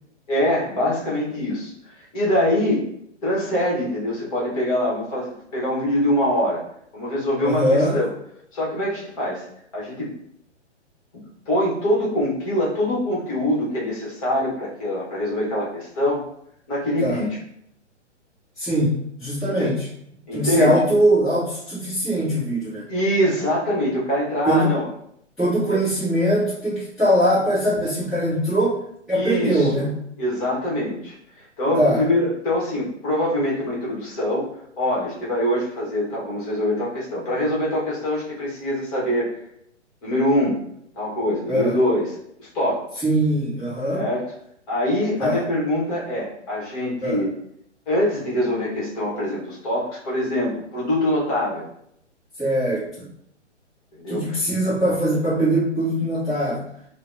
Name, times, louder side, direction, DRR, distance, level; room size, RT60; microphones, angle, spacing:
voice 1, 0.3-2.8 3.2-6.6 6.9-8.1 8.5-9.4 9.7-10.1 11.5-16.2 16.7-17.3 19.6-19.7 20.3-20.7 22.9-24.9 25.7-25.8 29.1-29.9 30.2-31.2 31.6-34.4 34.8-39.3 40.0-40.6 41.0-42.1 42.4-43.0 43.9-44.2 44.7-47.3 47.9-51.6 54.0-54.4, left 1 dB, 30° left, -5 dB, 0.9 m, -24 dB
voice 2, 7.4-8.0 17.0-17.2 18.6-19.9 20.3-22.9 24.5-24.7 25.4-29.9 31.8-32.0 41.5-41.8 43.0-44.0 45.2-45.4 47.0-47.2 52.4-53.1 54.1-56.6, right 1 dB, ahead, -16 dB, 0.7 m, -21 dB
3.4 x 2.0 x 2.4 m, 0.72 s
hypercardioid pair, 135°, 36 cm